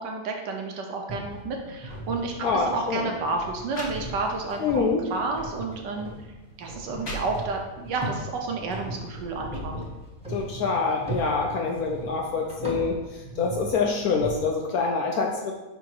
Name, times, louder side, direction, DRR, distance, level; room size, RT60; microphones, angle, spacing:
voice 1, 0.0-4.8 5.1-6.1 6.6-9.7, right 3 dB, 70° right, 2 dB, 1.4 m, -31 dB
sound 1, 1.1-14.3, right 1 dB, 5° right, 1.1 m, -39 dB
voice 2, 2.4-3.1 4.6-5.0 10.3-12.9 13.4-15.5, left 4 dB, 65° left, 1 dB, 1.0 m, -25 dB
sound 2, 2.4-2.6 3.3-3.4 3.7-4.6 5.1-5.3 6.1-6.2 6.7-7.8, equal, 40° left, 1.2 m, -38 dB
5.5 x 3.9 x 4.6 m, 1.1 s
omnidirectional pair, 2.0 m